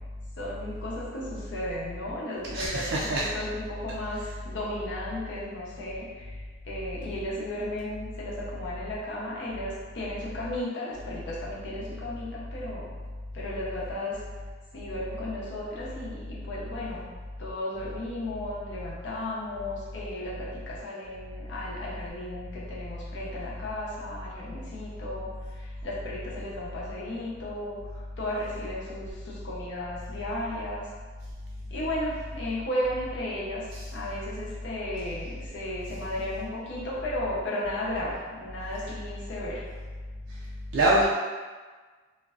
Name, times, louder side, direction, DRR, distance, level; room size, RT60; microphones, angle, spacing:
voice 1, 0.4-12.9 13.3-14.2 14.7-17.0 17.4-30.9 31.7-39.6, left 1 dB, 70° left, -6 dB, 0.6 m, -35 dB
voice 2, 2.5-3.3 40.7-41.0, right 1 dB, 80° right, -5 dB, 0.3 m, -23 dB
2.5 x 2.1 x 2.3 m, 1.4 s
head